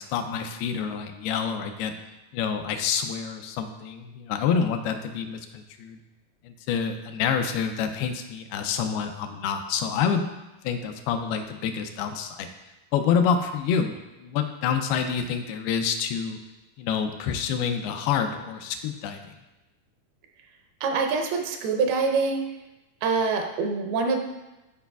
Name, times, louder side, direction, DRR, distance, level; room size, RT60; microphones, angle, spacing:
voice 1, 0.0-1.9 2.3-6.0 6.4-10.2 10.6-12.5 12.9-16.4 16.8-19.3, left 7 dB, 85° left, 6 dB, 2.5 m, -27 dB
voice 2, 20.8-22.5 23.0-24.2, right 4 dB, 80° right, 4 dB, 2.6 m, -25 dB
12.5 x 4.9 x 2.3 m, 1.0 s
omnidirectional pair, 4.5 m